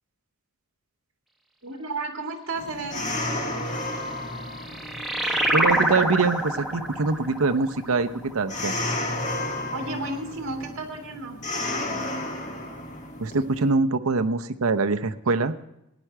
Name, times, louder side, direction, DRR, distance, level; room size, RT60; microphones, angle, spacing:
voice 1, 1.6-3.1 9.7-11.4, right 2 dB, 60° right, 3 dB, 2.1 m, -32 dB
sound 1, 2.5-13.7, left 1 dB, 35° left, 1.5 m, -33 dB
sound 2, 4.1-9.2, right 1 dB, ahead, 1.2 m, -27 dB
voice 2, 5.5-8.7 13.2-15.5, right 3 dB, 75° right, 9 dB, 0.7 m, -24 dB
16.0 x 9.9 x 4.6 m, 0.85 s
head